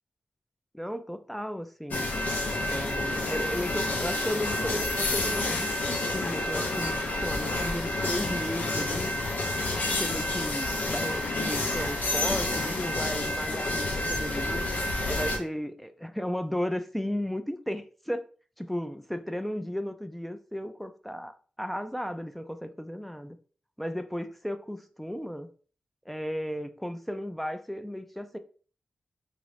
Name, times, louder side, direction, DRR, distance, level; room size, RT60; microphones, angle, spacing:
voice 1, 0.7-2.1 2.7-9.1 10.0-14.6 15.0-18.2 18.6-23.4 23.8-25.5 26.1-28.4, equal, 5° left, 0.3 m, -35 dB
sound 1, 1.9-15.4, left 2 dB, 80° left, 0.6 m, -29 dB
3.0 x 2.5 x 3.2 m
cardioid pair, 55°, 3 cm